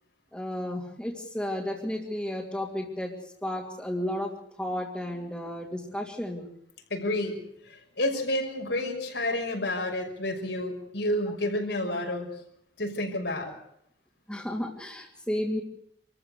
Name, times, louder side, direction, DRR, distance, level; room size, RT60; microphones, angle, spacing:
voice 1, 0.3-4.3 4.6-6.5 14.3-15.6, left 1 dB, 5° left, -3 dB, 2.8 m, -33 dB
voice 2, 6.9-7.4 7.6-12.3 12.8-13.5, left 1 dB, 75° left, 2 dB, 6.1 m, -30 dB
27.0 x 14.5 x 8.2 m, 0.77 s
head